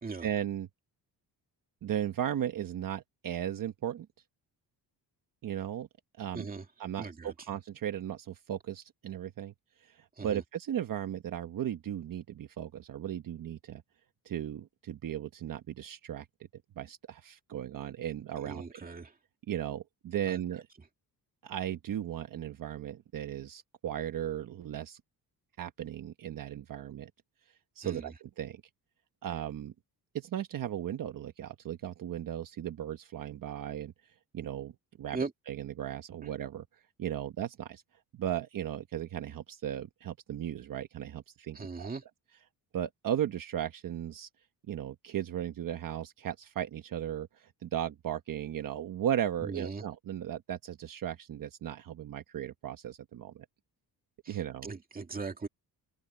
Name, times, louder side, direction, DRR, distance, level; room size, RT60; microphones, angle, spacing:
voice 1, 0.2-0.7 1.8-4.1 5.4-5.9 6.2-6.5 6.8-9.5 9.8-13.8 14.2-16.3 16.8-18.8 19.5-20.7 21.4-25.0 25.6-27.1 27.8-28.6 29.2-29.7 30.1-33.9 34.3-34.7 35.0-36.6 37.0-37.8 38.1-41.9 42.7-44.3 44.7-53.4 54.3-54.7, right 10 dB, 55° right, 1.2 m, -36 dB
voice 2, 6.3-6.6 7.0-7.3 10.2-10.4 18.4-19.1 20.3-20.4 27.8-28.0 35.1-35.3 41.6-42.0 49.5-49.8 54.3-54.4 54.6-55.5, right 4 dB, 20° right, 2.3 m, -38 dB
open air
wide cardioid pair, 165°, 40 cm